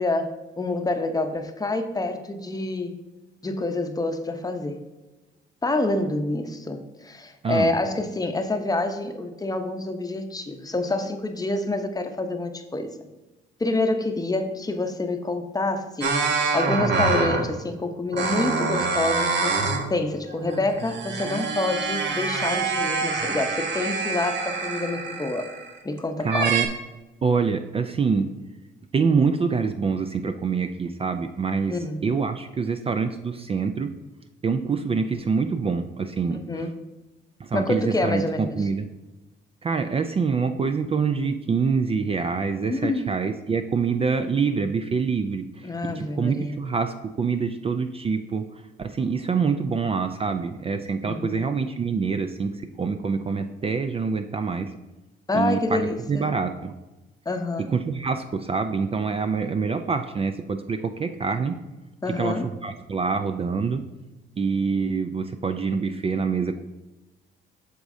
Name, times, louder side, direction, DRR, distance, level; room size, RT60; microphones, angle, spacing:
voice 1, 0.0-3.0 3.4-4.8 5.6-12.9 13.6-16.2 16.5-19.6 19.9-25.5 25.8-26.5 31.7-32.1 36.3-36.7 37.5-38.6 42.7-43.1 45.6-46.6 51.1-51.5 55.3-56.3 57.3-57.7 62.0-62.5, left 2 dB, 20° left, 6 dB, 0.7 m, -27 dB
voice 2, 7.4-7.7 26.2-26.7 27.2-28.3 28.9-33.9 34.4-36.7 37.4-38.9 39.6-54.7 55.3-56.7 57.7-61.6 62.1-63.8 64.4-66.6, right 5 dB, 30° right, 8 dB, 0.4 m, -26 dB
sound 1, 16.0-17.6 18.1-19.9 20.3-25.8 26.3-26.7, right 4 dB, 65° right, 1.0 m, -26 dB
8.1 x 6.2 x 2.6 m, 1.1 s
cardioid pair, 90°, 20 cm